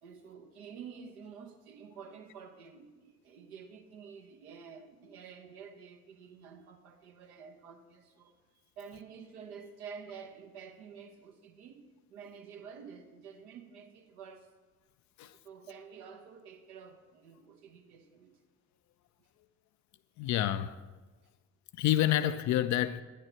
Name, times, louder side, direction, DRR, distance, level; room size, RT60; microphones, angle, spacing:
voice 1, 0.0-14.5 15.2-18.4, right 6 dB, 70° right, 1.0 m, -50 dB
voice 2, 20.2-20.8 21.7-23.0, left 12 dB, 40° left, 0.4 m, -28 dB
9.6 x 6.6 x 6.3 m
figure-of-eight pair, 45°, 46 cm